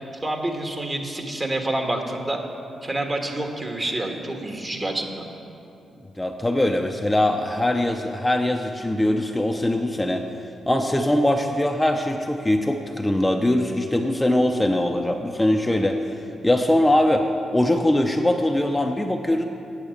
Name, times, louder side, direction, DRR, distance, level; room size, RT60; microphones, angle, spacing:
voice 1, 0.2-2.4 2.8-5.2, right 1 dB, 30° right, 3 dB, 1.5 m, -28 dB
voice 2, 6.2-10.2 10.7-16.0 16.4-17.3 17.5-19.4, left 1 dB, 15° left, 3 dB, 0.7 m, -21 dB
8.9 x 8.1 x 6.5 m, 2.7 s
supercardioid pair, 45°, 0 cm